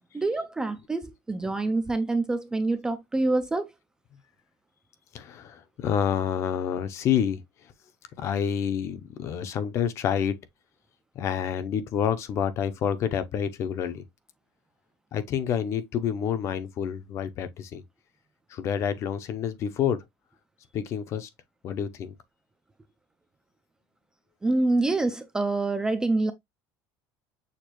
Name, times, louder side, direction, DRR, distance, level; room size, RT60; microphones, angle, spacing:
voice 1, 0.1-3.7 24.4-26.3, right 2 dB, 10° right, 0.3 m, -26 dB
voice 2, 5.1-7.4 8.2-10.3 11.2-14.0 15.1-17.8 18.5-20.0 20.7-21.3 21.6-22.1, left 8 dB, 40° left, 0.6 m, -28 dB
6.5 x 2.5 x 2.9 m
cardioid pair, 165°, 8 cm